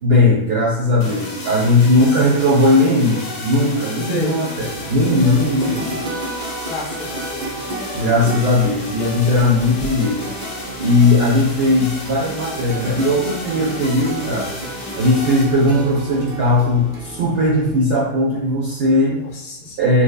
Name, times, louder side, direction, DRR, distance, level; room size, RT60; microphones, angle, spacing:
voice 1, 0.0-6.0 7.9-10.3 10.8-14.5 15.0-19.2 19.8-20.0, left 1 dB, 65° right, -5 dB, 0.7 m, -17 dB
sound 1, 1.0-17.0, left 2 dB, 90° left, 1.0 m, -32 dB
sound 2, 4.5-17.7, right 2 dB, 85° right, 0.3 m, -33 dB
voice 2, 6.7-7.7 19.1-19.8, left 2 dB, 50° left, -2 dB, 0.5 m, -30 dB
2.7 x 2.1 x 2.2 m, 0.82 s
omnidirectional pair, 1.3 m